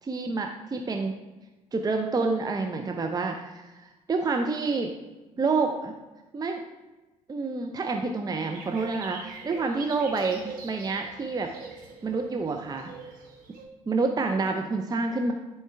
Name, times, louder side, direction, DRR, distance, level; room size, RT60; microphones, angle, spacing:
voice 1, 0.0-1.2 1.7-4.9 5.4-5.9 6.3-6.6 7.3-12.9 13.9-15.3, right 3 dB, 20° right, 4 dB, 0.6 m, -28 dB
sound 1, 8.5-13.7, right 4 dB, 50° right, 1.2 m, -43 dB
10.0 x 4.5 x 3.4 m, 1.1 s
figure-of-eight pair, 50°, 18 cm